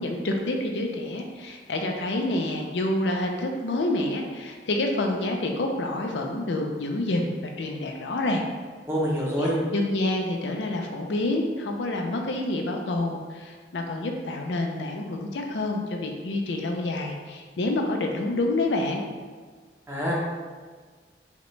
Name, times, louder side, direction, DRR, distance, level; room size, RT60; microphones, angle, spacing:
voice 1, 0.0-7.3 7.6-8.4 9.4-19.0, left 2 dB, 85° left, 2 dB, 0.5 m, -28 dB
voice 2, 8.9-9.6 19.9-20.1, equal, 15° right, -5 dB, 0.7 m, -26 dB
4.9 x 2.2 x 3.1 m, 1.5 s
head